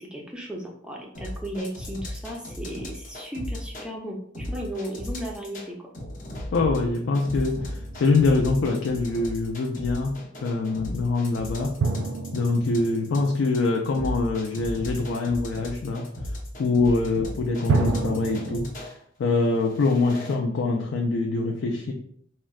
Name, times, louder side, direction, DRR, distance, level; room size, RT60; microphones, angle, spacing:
voice 1, 0.0-5.8, equal, 5° right, -1 dB, 0.4 m, -35 dB
sound 1, 1.1-3.9 4.3-5.7 5.9-18.9 19.5-20.3, left 1 dB, 40° left, 0.7 m, -35 dB
voice 2, 6.5-11.7 12.3-16.1 16.6-18.7 19.2-21.9, left 3 dB, 70° left, 1 dB, 0.4 m, -24 dB
sound 2, 7.6-9.0 11.8-14.4 17.7-18.6, right 4 dB, 65° right, 0.4 m, -29 dB
3.6 x 2.1 x 2.3 m, 0.63 s
head